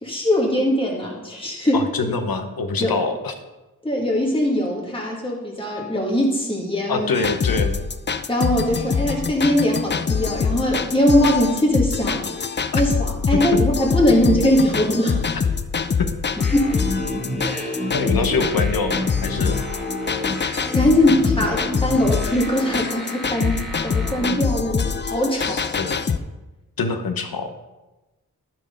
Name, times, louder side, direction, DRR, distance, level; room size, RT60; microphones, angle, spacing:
voice 1, 0.0-2.1 2.8-3.0 3.8-7.1 8.3-12.3 12.7-15.2 16.5-16.8 17.4-17.9 20.5-25.7, left 1 dB, 15° left, -2 dB, 2.1 m, -21 dB
voice 2, 1.7-3.3 6.9-7.8 12.7-12.8 13.3-13.4 16.0-16.1 17.9-19.6 25.4-26.1 26.8-27.5, left 4 dB, 85° left, 7 dB, 1.0 m, -25 dB
sound 1, 7.1-26.2, left 6 dB, 30° left, 0.4 m, -24 dB
sound 2, 16.4-24.3, left 1 dB, ahead, 1.4 m, -30 dB
12.0 x 4.6 x 5.3 m, 1.1 s
wide cardioid pair, 100°, 34 cm